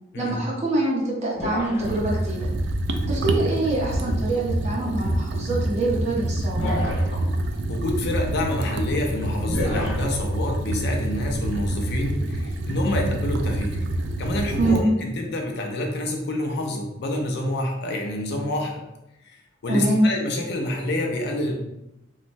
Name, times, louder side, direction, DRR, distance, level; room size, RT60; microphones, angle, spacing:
voice 1, 0.2-2.5 3.1-6.7 14.6-14.8 19.7-20.1, right 2 dB, 35° right, -3 dB, 0.7 m, -25 dB
sound 1, 1.4-2.3 4.7-4.9 6.5-7.3 9.5-10.0, left 1 dB, 75° left, 1.0 m, -29 dB
sound 2, 1.8-14.8, right 1 dB, 65° right, 0.3 m, -27 dB
voice 2, 7.7-13.9 14.2-18.8 19.6-21.5, left 1 dB, 60° left, 2 dB, 0.5 m, -27 dB
3.1 x 2.1 x 2.5 m, 0.88 s
head